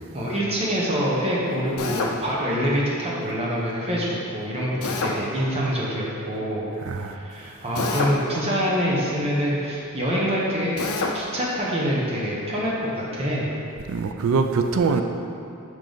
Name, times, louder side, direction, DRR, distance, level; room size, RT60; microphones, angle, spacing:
voice 1, 0.1-6.7 7.1-10.8 11.1-13.5, equal, 25° right, -5 dB, 0.8 m, -25 dB
Drill, 1.8-2.2 4.8-5.2 7.8-8.2 10.8-11.2, left 4 dB, 75° left, 0.6 m, -26 dB
voice 2, 6.8-7.3 13.9-15.0, right 4 dB, 65° right, 6 dB, 0.3 m, -23 dB
5.6 x 5.1 x 3.8 m, 2.8 s
head